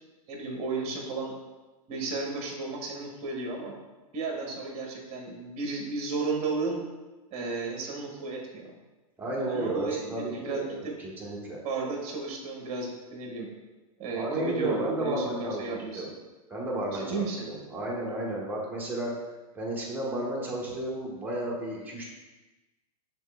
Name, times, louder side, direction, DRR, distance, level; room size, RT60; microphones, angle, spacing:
voice 1, 0.3-1.3 1.9-3.7 4.1-6.8 7.3-8.7 9.4-11.0 11.6-13.5 14.0-16.0 16.9-17.5, right 3 dB, 35° right, 0 dB, 1.0 m, -33 dB
voice 2, 9.2-11.6 14.1-16.1 16.5-19.1 19.5-22.0, right 1 dB, 10° right, -4 dB, 1.1 m, -33 dB
6.2 x 3.4 x 2.3 m, 1.2 s
hypercardioid pair, 115°, 19 cm